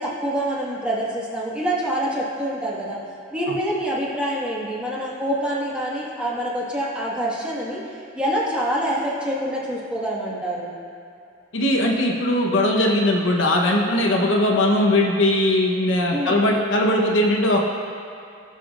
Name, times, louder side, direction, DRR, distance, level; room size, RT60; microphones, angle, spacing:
voice 1, 0.0-3.0 3.3-10.7 16.1-16.5, right 1 dB, 5° right, -7 dB, 1.7 m, -26 dB
voice 2, 11.5-17.6, left 1 dB, 70° left, 0 dB, 1.0 m, -19 dB
20.0 x 6.8 x 2.5 m, 2.5 s
head